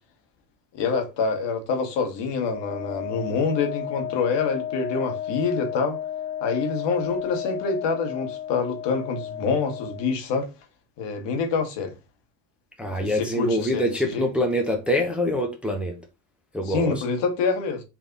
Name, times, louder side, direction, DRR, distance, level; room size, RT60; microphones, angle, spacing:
voice 1, 0.7-6.0 6.4-10.5 11.0-11.9 13.0-14.3 16.7-17.8, left 4 dB, 55° left, 1.2 m, -26 dB
Wind instrument woodwind instrument, 2.3-10.1, left 10 dB, 25° left, 0.4 m, -33 dB
voice 2, 12.8-16.0 16.5-17.0, left 1 dB, ahead, 0.7 m, -25 dB
3.4 x 2.6 x 3.8 m
hypercardioid pair, 80°, 50 cm